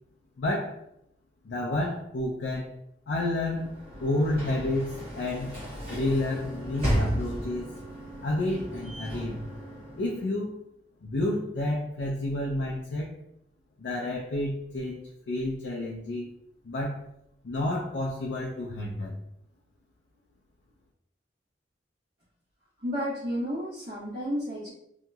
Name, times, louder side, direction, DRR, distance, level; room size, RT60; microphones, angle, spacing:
voice 1, 0.4-0.8 1.4-2.7 3.1-3.7 4.0-5.6 5.9-7.7 8.2-9.4 10.0-10.6 11.0-13.2 13.8-16.3 16.6-17.0 17.4-19.2, left 1 dB, 75° left, -3 dB, 0.5 m, -30 dB
Sliding door / Slam, 3.4-10.4, equal, 30° right, 1.1 m, -34 dB
voice 2, 22.8-24.7, equal, 55° right, -12 dB, 1.2 m, -31 dB
2.8 x 2.8 x 2.3 m, 0.76 s
head